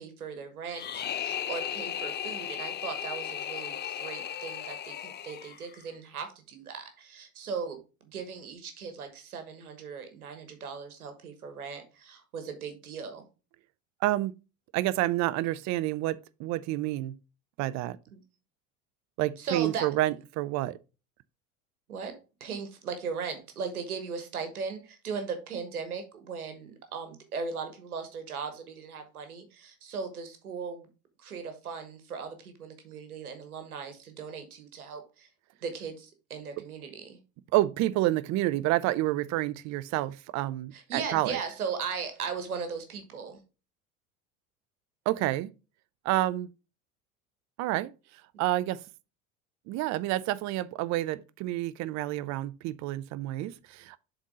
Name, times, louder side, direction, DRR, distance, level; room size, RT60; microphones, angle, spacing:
voice 1, 0.0-13.2 18.1-18.2 19.4-19.9 21.9-30.9 31.2-35.3 35.6-37.2 40.7-43.4, right 5 dB, 85° right, 1.3 m, -38 dB
sound 1, 0.7-5.8, left 9 dB, 25° left, 0.6 m, -36 dB
voice 2, 14.7-17.2 17.6-18.0 19.2-20.8 37.5-41.4 45.1-45.5 46.0-46.5 47.6-47.9 48.4-48.8 49.7-54.0, right 16 dB, 40° right, 0.5 m, -29 dB
7.2 x 4.0 x 3.6 m
hypercardioid pair, 75°, 43 cm